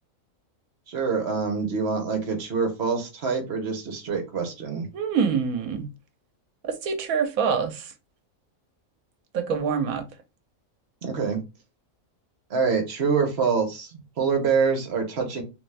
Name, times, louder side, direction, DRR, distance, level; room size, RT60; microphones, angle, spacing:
voice 1, 0.9-4.9 11.0-11.4 12.5-15.4, right 5 dB, 50° right, 1.1 m, -25 dB
voice 2, 4.9-5.9 6.6-7.9 9.3-10.1, right 6 dB, 85° right, 1.1 m, -25 dB
3.5 x 2.6 x 3.2 m
omnidirectional pair, 1.5 m